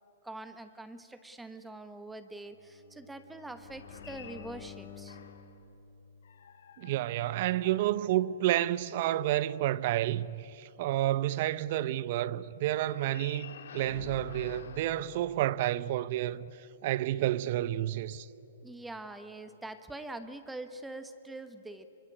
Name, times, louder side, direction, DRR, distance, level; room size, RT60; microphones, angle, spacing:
voice 1, 0.2-5.2 18.6-21.9, right 2 dB, 5° right, 1.0 m, -44 dB
Bowed string instrument, 2.5-6.7, left 6 dB, 40° left, 3.2 m, -52 dB
sound 1, 3.6-5.6 6.2-8.6 12.7-15.9, left 7 dB, 70° left, 2.4 m, -49 dB
voice 2, 6.8-16.5 16.8-18.3, right 13 dB, 45° right, 0.7 m, -30 dB
25.0 x 24.0 x 9.8 m
hypercardioid pair, 145°, 0 cm